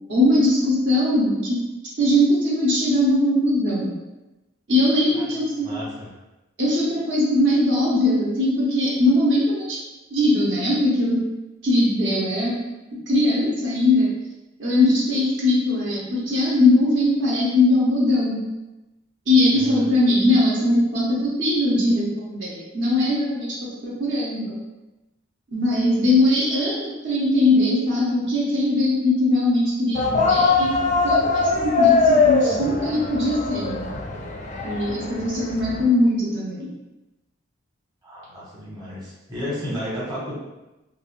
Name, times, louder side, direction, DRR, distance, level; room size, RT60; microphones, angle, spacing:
voice 1, 0.1-1.6 2.0-3.9 4.7-5.7 6.6-9.8 10.1-11.2 11.6-12.5 13.1-14.1 14.6-18.4 19.3-23.6 23.8-24.6 25.5-30.7 31.0-33.9 34.6-36.7, left 1 dB, 65° right, -6 dB, 0.8 m, -20 dB
voice 2, 5.5-6.1 19.5-19.9 38.0-40.3, equal, 20° right, -8 dB, 1.0 m, -33 dB
sound 1, 30.0-35.8, left 4 dB, 40° left, 0.4 m, -21 dB
3.4 x 2.5 x 2.5 m, 1.0 s
head